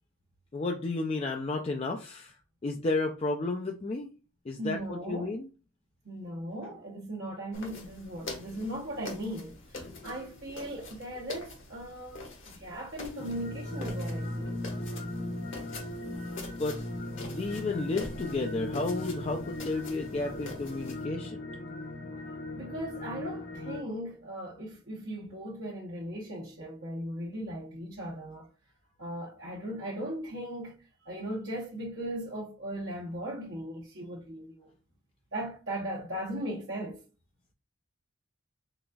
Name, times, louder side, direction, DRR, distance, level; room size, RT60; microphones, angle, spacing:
voice 1, 0.5-2.3 2.6-4.1 4.5-5.5 9.8-10.1 16.2-16.3 16.6-16.8 17.2-21.4, left 3 dB, 30° left, 0.3 m, -32 dB
voice 2, 4.6-5.3 6.0-9.6 10.0-14.6 22.5-28.5 29.0-30.8 31.0-34.7 35.3-37.0, right 1 dB, 60° right, 0.8 m, -38 dB
sound 1, 7.5-21.0, left 2 dB, 65° left, 1.2 m, -45 dB
sound 2, 13.2-23.8, left 1 dB, 85° left, 1.8 m, -38 dB
3.9 x 3.5 x 2.3 m
head